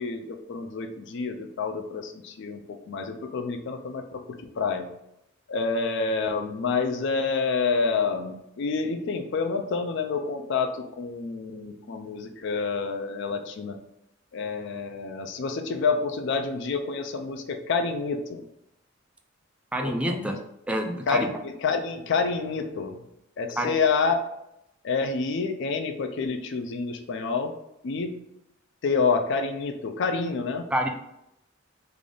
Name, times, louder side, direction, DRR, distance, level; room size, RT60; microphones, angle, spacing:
voice 1, 0.0-4.2 4.6-4.9 5.5-13.8 14.3-18.4 19.8-20.3 21.1-23.0 23.4-24.2 24.8-27.5 27.8-28.2 28.8-30.7, left 4 dB, 60° left, 6 dB, 0.4 m, -28 dB
voice 2, 19.7-20.4 20.7-21.3 23.6-23.7 30.7-30.9, equal, 5° right, 3 dB, 0.4 m, -27 dB
3.4 x 2.4 x 3.7 m, 0.83 s
head